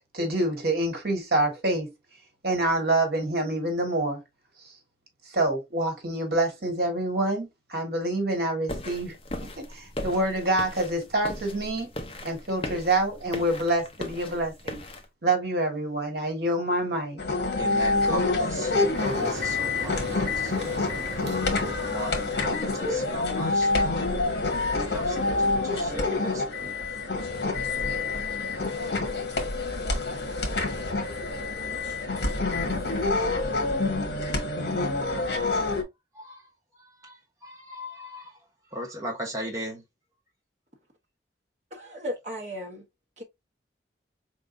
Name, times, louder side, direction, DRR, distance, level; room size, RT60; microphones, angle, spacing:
voice 1, 0.1-1.9 2.4-4.2 5.3-9.1 9.6-11.9 12.2-14.8 15.2-17.2, right 1 dB, 60° right, 1.6 m, -26 dB
sound 1, 8.7-15.0, left 1 dB, 30° left, 0.7 m, -38 dB
sound 2, 17.2-35.8, left 3 dB, 75° left, 1.4 m, -27 dB
voice 2, 17.6-21.0 21.7-24.2 24.7-26.8 36.1-36.4 36.8-38.4 38.7-39.8, equal, 20° right, 1.0 m, -38 dB
Motor vehicle (road), 18.9-23.9, right 1 dB, 80° right, 1.0 m, -39 dB
voice 3, 41.7-42.8 43.2-43.3, equal, 40° right, 1.2 m, -35 dB
4.6 x 3.6 x 2.6 m
head